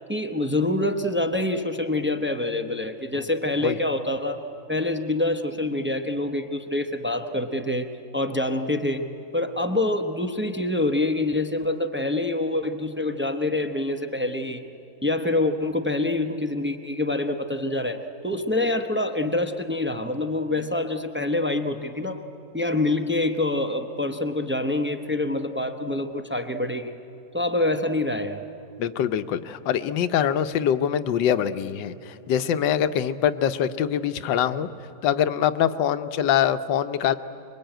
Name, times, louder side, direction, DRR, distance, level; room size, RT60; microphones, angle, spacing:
voice 1, 0.1-4.4 4.7-9.1 9.3-14.6 15.0-22.2 22.5-27.0 27.3-28.4, left 2 dB, 15° right, 6 dB, 0.3 m, -26 dB
voice 2, 28.8-34.7 35.0-37.1, left 9 dB, 85° left, 11 dB, 1.5 m, -24 dB
25.5 x 22.5 x 9.1 m, 2.8 s
omnidirectional pair, 1.9 m